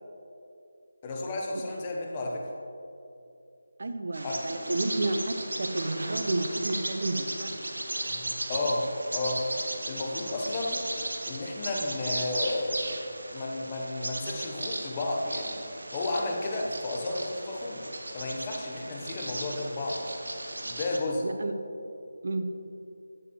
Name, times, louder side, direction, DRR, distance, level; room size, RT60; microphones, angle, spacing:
voice 1, 1.0-2.5 4.2-4.4 8.1-9.5 9.9-10.9 11.2-12.9 13.3-15.6 15.9-17.8 18.1-20.0 20.6-21.2, left 2 dB, 25° left, -1 dB, 1.0 m, -32 dB
voice 2, 3.8-7.5 21.2-21.5 22.2-22.5, right 2 dB, 60° right, 7 dB, 0.7 m, -31 dB
Bird vocalization bird call bird song, 4.1-21.0, right 1 dB, 75° right, 1.1 m, -36 dB
11.0 x 7.8 x 3.1 m, 2.7 s
figure-of-eight pair, 160°, 0 cm